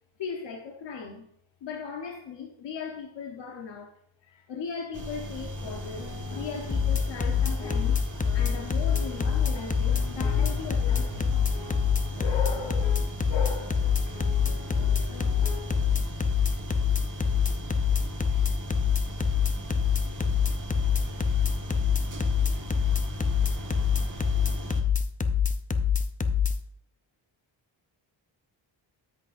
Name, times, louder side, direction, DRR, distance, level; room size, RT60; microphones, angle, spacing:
voice 1, 0.2-1.3 1.6-8.1 8.3-11.5 12.2-14.1, left 5 dB, 65° left, 1.1 m, -38 dB
sound 1, 4.9-24.8, equal, 40° right, 1.5 m, -38 dB
sound 2, 5.6-16.1, left 4 dB, 50° left, 3.3 m, -43 dB
sound 3, 6.7-26.5, left 7 dB, 20° left, 0.5 m, -24 dB
13.0 x 6.4 x 2.6 m
wide cardioid pair, 120°, 46 cm